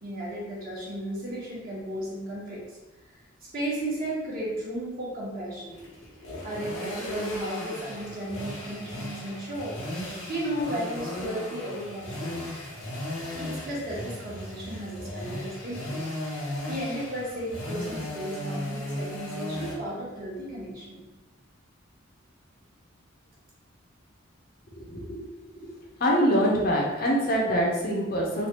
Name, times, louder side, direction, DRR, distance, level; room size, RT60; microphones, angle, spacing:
voice 1, 0.0-2.6 3.5-5.8 6.4-9.8 10.3-12.4 13.3-16.0 16.3-16.4 16.7-21.0, right 1 dB, 45° right, -6 dB, 1.0 m, -34 dB
sound 1, 5.7-19.7, left 1 dB, 85° left, 0.8 m, -36 dB
voice 2, 24.8-25.2 26.0-28.5, equal, 45° left, -2 dB, 0.5 m, -24 dB
3.1 x 2.3 x 2.8 m, 1.1 s
head